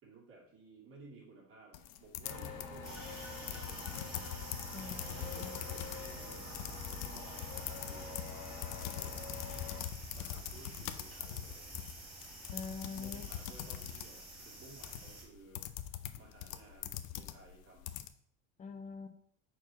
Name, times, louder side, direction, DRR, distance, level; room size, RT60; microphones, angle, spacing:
voice 1, 0.0-4.3 5.2-8.2 8.7-9.3 10.1-11.6 12.9-15.6 16.2-17.9, right 3 dB, 30° right, -4 dB, 2.4 m, -56 dB
sound 1, 1.7-18.1, left 12 dB, 70° left, 0.7 m, -43 dB
sound 2, 2.2-9.8, left 4 dB, 45° left, 1.5 m, -46 dB
sound 3, 2.8-15.2, right 1 dB, 10° right, 2.7 m, -49 dB
voice 2, 4.7-5.5 12.5-13.2 13.6-13.7 18.6-19.1, left 4 dB, 20° left, 5 dB, 0.7 m, -44 dB
4.8 x 4.5 x 5.6 m, 0.68 s
supercardioid pair, 140°, 41 cm